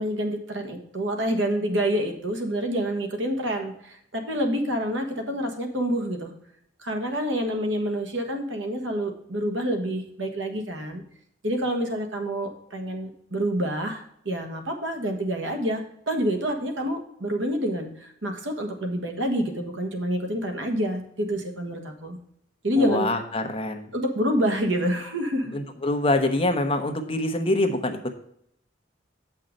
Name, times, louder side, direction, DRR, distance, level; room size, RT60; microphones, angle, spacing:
voice 1, 0.0-6.3 6.8-11.0 11.4-17.9 18.2-22.2 22.6-23.1 23.9-25.5, equal, 90° right, 4 dB, 1.5 m, -27 dB
voice 2, 22.8-23.9 25.4-28.1, left 2 dB, 30° left, 5 dB, 1.0 m, -25 dB
7.7 x 5.7 x 5.2 m, 0.72 s
head